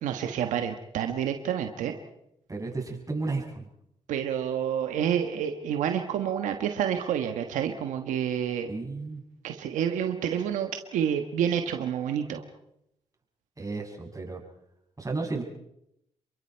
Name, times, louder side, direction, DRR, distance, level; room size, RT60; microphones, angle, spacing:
voice 1, 0.0-1.9 4.1-8.7 9.4-12.4, right 9 dB, 90° right, 6 dB, 1.4 m, -29 dB
voice 2, 2.5-3.7 8.7-9.2 13.6-14.4 15.0-15.4, right 3 dB, 25° right, 1 dB, 6.8 m, -33 dB
28.0 x 23.0 x 4.6 m, 0.79 s
supercardioid pair, 60°, 13 cm